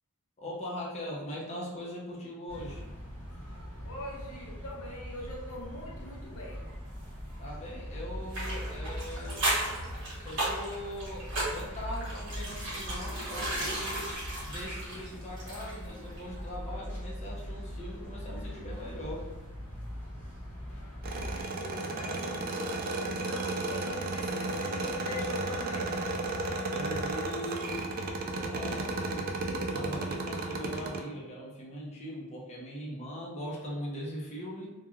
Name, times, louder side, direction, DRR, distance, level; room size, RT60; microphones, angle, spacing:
voice 1, 0.4-2.8 7.4-9.5 10.2-14.1 14.4-19.3 26.7-27.9 28.4-34.7, equal, 30° left, -4 dB, 0.6 m, -41 dB
sound 1, 2.5-21.4, equal, 10° left, 1.0 m, -41 dB
voice 2, 3.8-6.7 20.6-22.8 23.2-26.0, left 1 dB, 75° left, -2 dB, 0.7 m, -43 dB
sound 2, 8.3-15.9 16.2-16.3, right 1 dB, 60° right, 1.2 m, -35 dB
sound 3, 21.0-31.0, right 2 dB, 40° right, 0.3 m, -33 dB
3.0 x 2.2 x 2.3 m, 1.2 s
head